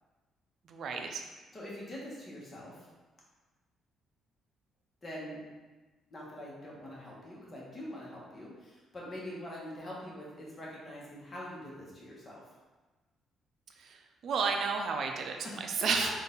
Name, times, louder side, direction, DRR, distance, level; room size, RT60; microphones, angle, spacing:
voice 1, 0.7-1.2 13.8-14.0 14.2-16.1, right 5 dB, 60° right, 3 dB, 0.5 m, -32 dB
voice 2, 1.5-2.7 5.0-5.4 6.1-12.4 15.4-15.7, left 1 dB, 30° left, -5 dB, 1.3 m, -44 dB
3.9 x 2.6 x 3.9 m, 1.2 s
cardioid pair, 105°, 0 cm